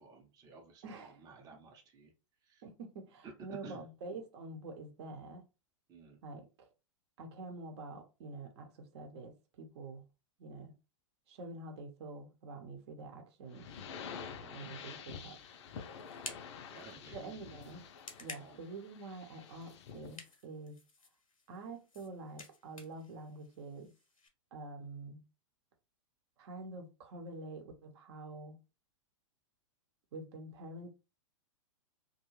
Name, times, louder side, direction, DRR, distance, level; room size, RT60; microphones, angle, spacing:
voice 1, 0.0-2.1 2.5-2.6 3.6-3.8 5.9-6.2 14.4-14.7 16.7-17.4 18.4-18.6, right 3 dB, 25° right, 0.7 m, -55 dB
voice 2, 0.8-1.3 2.6-5.5 6.2-6.7 7.2-10.1 10.4-10.7 11.3-13.7 14.5-15.6 17.1-17.8 18.2-20.8 21.5-23.9 24.5-25.2 26.4-28.6 30.1-30.9, right 2 dB, 55° right, 0.8 m, -47 dB
sound 1, 13.5-20.2, left 6 dB, 55° left, 0.5 m, -48 dB
sound 2, 15.1-24.3, left 3 dB, 90° left, 0.8 m, -54 dB
2.5 x 2.2 x 3.0 m
hypercardioid pair, 110°, 17 cm